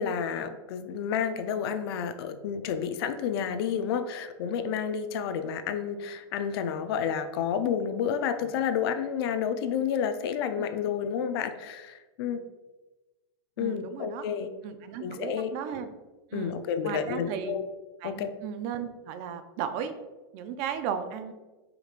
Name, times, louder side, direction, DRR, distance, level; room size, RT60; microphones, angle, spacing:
voice 1, 0.0-12.4 13.6-14.5 15.0-15.5 16.3-17.6 18.0-18.3, left 7 dB, 65° left, 9 dB, 0.4 m, -30 dB
voice 2, 13.6-14.2 14.6-15.9 16.3-16.6 16.8-17.6 18.0-19.9 20.3-21.3, right 8 dB, 45° right, 9 dB, 0.4 m, -35 dB
5.0 x 3.0 x 2.4 m, 1.2 s
supercardioid pair, 130°, 14 cm